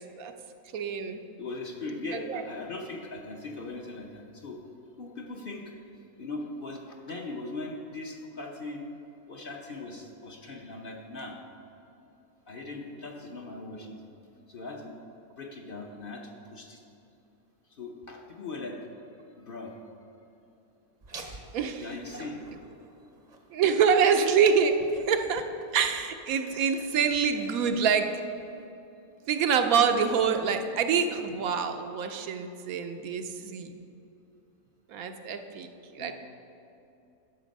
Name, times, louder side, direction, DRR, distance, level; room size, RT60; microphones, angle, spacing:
voice 1, 0.7-1.2 2.3-2.4 21.5-21.8 23.5-24.8 25.1-25.5 25.7-28.1 29.3-33.7 34.9-36.1, right 6 dB, 80° right, 6 dB, 1.1 m, -26 dB
voice 2, 1.4-4.6 5.0-5.7 6.2-8.9 9.3-11.4 12.5-14.1 14.5-14.9 15.4-16.8 17.8-18.8 19.4-19.8 21.8-22.4 36.0-36.1, left 2 dB, 45° left, 1 dB, 0.9 m, -39 dB
Laughter, 21.0-28.7, right 2 dB, 40° right, 0.7 m, -50 dB
11.0 x 6.9 x 5.2 m, 2.7 s
omnidirectional pair, 1.5 m